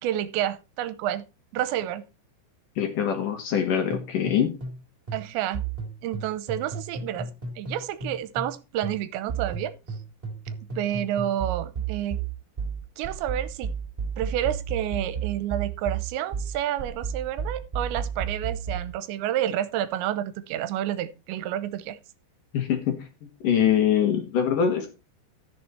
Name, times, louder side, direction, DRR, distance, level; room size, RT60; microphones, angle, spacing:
voice 1, 0.0-1.2 1.5-2.0 5.1-5.6 6.0-7.3 7.6-9.7 10.8-12.2 13.0-13.7 14.2-22.0, right 11 dB, 85° right, 3.0 m, -29 dB
voice 2, 2.8-4.5 22.5-23.1 23.4-24.9, left 8 dB, 60° left, 2.7 m, -23 dB
sound 1, 3.9-4.8 5.1-8.6 8.8-18.9, right 6 dB, 15° right, 3.2 m, -33 dB
14.0 x 7.0 x 4.3 m
omnidirectional pair, 5.2 m